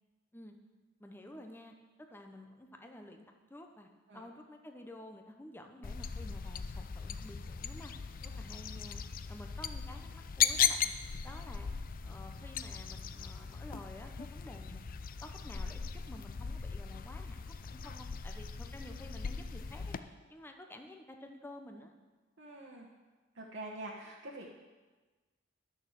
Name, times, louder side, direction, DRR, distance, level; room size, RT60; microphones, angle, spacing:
voice 1, 1.0-3.2 3.5-7.9 8.2-9.0 9.3-10.9 11.2-11.7 12.0-14.8 15.2-21.9, left 1 dB, 10° left, 4 dB, 0.8 m, -51 dB
sound 1, 5.8-20.0, left 8 dB, 45° left, 0.5 m, -37 dB
voice 2, 22.4-22.9 23.3-24.5, right 2 dB, 65° right, -3 dB, 1.2 m, -45 dB
11.0 x 6.3 x 7.4 m, 1.3 s
head